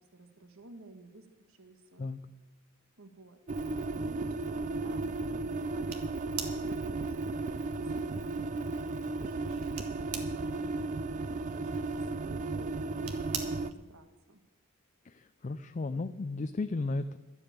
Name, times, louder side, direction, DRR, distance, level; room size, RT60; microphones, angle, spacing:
voice 1, 0.0-2.1 3.0-3.4 4.0-9.7 10.3-14.4, right 2 dB, 70° right, 7 dB, 1.4 m, -54 dB
sound 1, 3.5-13.7, right 3 dB, 35° right, 0.4 m, -34 dB
sound 2, 5.9-14.0, right 7 dB, 85° right, 1.6 m, -46 dB
voice 2, 15.0-17.2, left 3 dB, 35° left, 10 dB, 0.4 m, -34 dB
12.5 x 7.8 x 8.7 m, 1.1 s
head